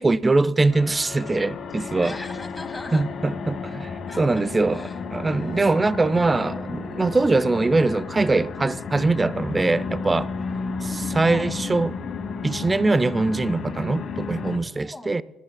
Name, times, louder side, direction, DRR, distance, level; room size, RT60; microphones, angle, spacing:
voice 1, 0.0-2.2 2.9-10.3 11.1-12.0 12.4-15.2, right 3 dB, 25° right, 0.4 m, -22 dB
sound 1, 0.7-14.6, left 5 dB, 50° left, 1.8 m, -32 dB
voice 2, 2.0-3.1 4.1-5.0 5.3-5.6 10.4-11.5 14.8-15.1, left 2 dB, 15° left, 1.9 m, -40 dB
28.0 x 9.8 x 2.2 m
hypercardioid pair, 50°, 0 cm